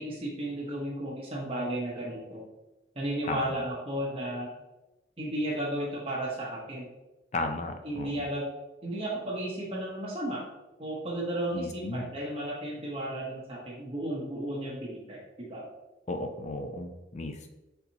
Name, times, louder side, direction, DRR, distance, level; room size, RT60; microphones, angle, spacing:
voice 1, 0.0-2.4 3.0-4.5 5.2-6.9 7.8-8.5 8.8-10.4 10.8-15.6, right 1 dB, 30° right, -4 dB, 0.8 m, -34 dB
voice 2, 3.3-3.6 7.3-8.2 11.5-12.1 16.1-17.5, left 2 dB, 35° left, 6 dB, 0.4 m, -34 dB
4.4 x 3.9 x 2.7 m, 1.0 s
head